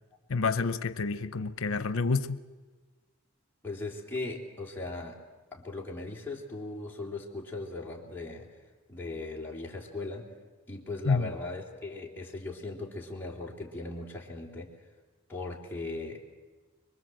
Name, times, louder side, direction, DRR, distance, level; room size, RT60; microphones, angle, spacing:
voice 1, 0.3-2.4 11.0-11.3, left 4 dB, 85° left, 0.7 m, -28 dB
voice 2, 3.6-5.2 5.5-8.5 8.9-10.3 10.7-14.7 15.3-16.4, left 2 dB, 10° left, 3.3 m, -38 dB
25.0 x 22.5 x 7.8 m
head